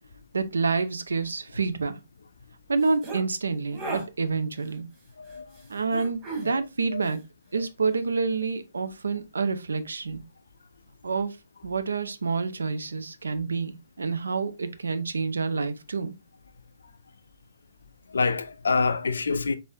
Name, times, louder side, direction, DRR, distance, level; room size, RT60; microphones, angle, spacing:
voice 1, 0.3-2.0 2.7-4.9 5.7-7.2 7.5-10.2 11.0-11.4 11.6-16.1, right 4 dB, 65° right, 0.5 m, -28 dB
sound 1, 2.8-3.2 3.7-4.1 5.9-6.5, right 3 dB, 20° right, 1.7 m, -34 dB
voice 2, 18.1-19.6, left 4 dB, 60° left, 0.4 m, -26 dB
4.2 x 3.3 x 2.3 m
figure-of-eight pair, 130°, 0 cm